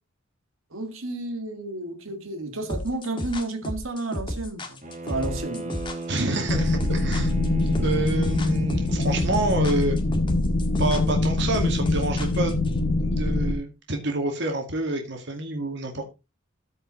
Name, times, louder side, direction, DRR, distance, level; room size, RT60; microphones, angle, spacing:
voice 1, 0.7-5.8 7.1-7.3, right 2 dB, 85° right, 1.8 m, -32 dB
sound 1, 2.7-12.7, left 1 dB, 25° left, 1.7 m, -33 dB
Bowed string instrument, 4.8-9.3, right 2 dB, 35° right, 2.0 m, -37 dB
voice 2, 6.1-7.3 7.7-10.0 10.8-12.7 13.0-16.0, right 2 dB, 60° right, 2.2 m, -27 dB
sound 2, 6.5-13.5, left 2 dB, 50° left, 1.2 m, -24 dB
14.0 x 5.5 x 4.0 m
head